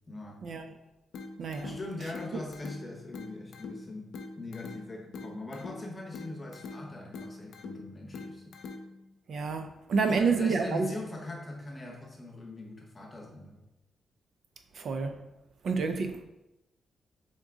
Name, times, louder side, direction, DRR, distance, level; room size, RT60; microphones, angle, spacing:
voice 1, 0.1-0.5 1.6-4.1 4.4-8.5 10.1-13.6, left 2 dB, 20° left, 0 dB, 0.8 m, -41 dB
sound 1, 1.1-9.1, left 3 dB, 85° left, 0.5 m, -44 dB
voice 2, 1.4-1.8 9.3-10.9 14.8-15.1 15.6-16.3, right 4 dB, 55° right, 6 dB, 0.4 m, -28 dB
3.9 x 3.6 x 3.6 m, 0.91 s
wide cardioid pair, 145°, 0 cm